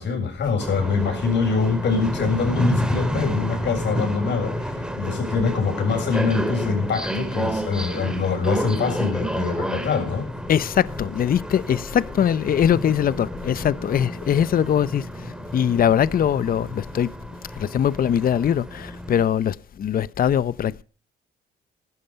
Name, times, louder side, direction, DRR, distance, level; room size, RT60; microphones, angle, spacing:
voice 1, 0.0-10.3, left 5 dB, 60° left, 7.2 m, -24 dB
sound 1, 0.6-19.2, equal, 5° right, 2.7 m, -30 dB
voice 2, 10.5-17.1 17.6-20.8, left 9 dB, 45° left, 0.6 m, -22 dB
15.0 x 12.5 x 5.7 m
cardioid pair, 90°, 20 cm